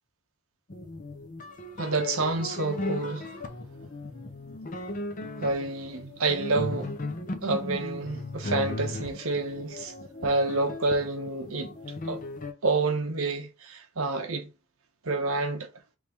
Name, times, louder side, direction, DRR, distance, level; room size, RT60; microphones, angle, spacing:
sound 1, 0.7-12.5, left 2 dB, 35° left, 0.7 m, -36 dB
voice 1, 1.8-3.4 5.4-6.9 7.4-9.9 10.2-11.7 12.1-12.2 12.6-14.5 15.0-15.7, right 3 dB, 70° right, 1.0 m, -28 dB
5.2 x 3.3 x 3.0 m
head